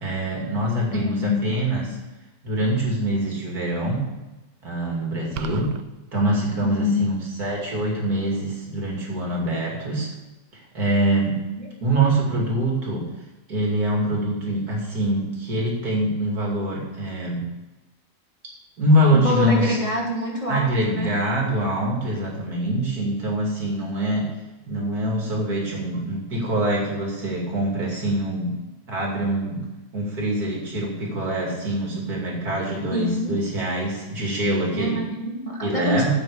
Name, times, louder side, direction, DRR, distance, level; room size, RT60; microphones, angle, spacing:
voice 1, 0.0-2.0 2.4-4.1 4.6-5.7 6.1-10.1 10.7-11.5 11.8-13.1 13.5-17.4 18.8-19.8 20.5-24.3 24.7-28.6 28.9-29.6 29.9-35.0 35.6-36.1, right 1 dB, 60° right, -2 dB, 3.2 m, -24 dB
voice 2, 0.9-1.5 6.6-7.0 9.5-9.6 11.6-11.7 19.1-21.1 32.9-33.3 34.7-36.1, left 1 dB, 20° left, -3 dB, 1.7 m, -26 dB
sound 1, 5.4-5.8, right 9 dB, 80° right, 1.3 m, -34 dB
8.2 x 7.9 x 6.8 m, 1.1 s
omnidirectional pair, 1.9 m